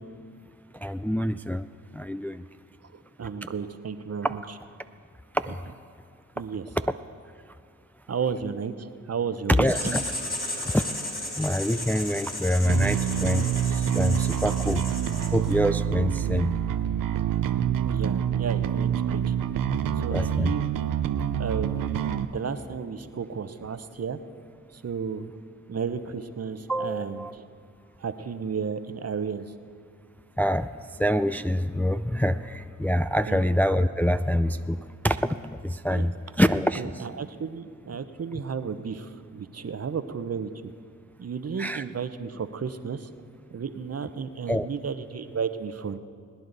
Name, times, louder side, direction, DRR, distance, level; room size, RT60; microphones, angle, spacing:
voice 1, 0.7-1.7 1.9-2.4 4.2-4.3 5.3-5.6 6.9-7.0 9.6-10.0 10.6-10.8 11.4-14.9 15.3-16.6 20.1-20.5 26.7-27.4 30.4-37.0 41.6-41.8 44.5-44.7, equal, 5° left, 10 dB, 0.4 m, -26 dB
voice 2, 2.9-4.4 6.4-6.7 8.1-10.0 17.8-19.4 20.0-20.9 21.4-24.2 24.7-25.3 25.7-27.5 28.0-29.4 33.3-33.4 35.9-36.1 36.8-40.5 41.2-43.1 43.5-46.0, right 6 dB, 50° right, 11 dB, 0.9 m, -33 dB
Writing, 9.7-15.6, left 1 dB, 30° left, 3.9 m, -34 dB
Bass guitar, 12.7-22.3, right 10 dB, 85° right, 0.6 m, -26 dB
21.0 x 9.5 x 4.0 m, 2.3 s
supercardioid pair, 40°, 32 cm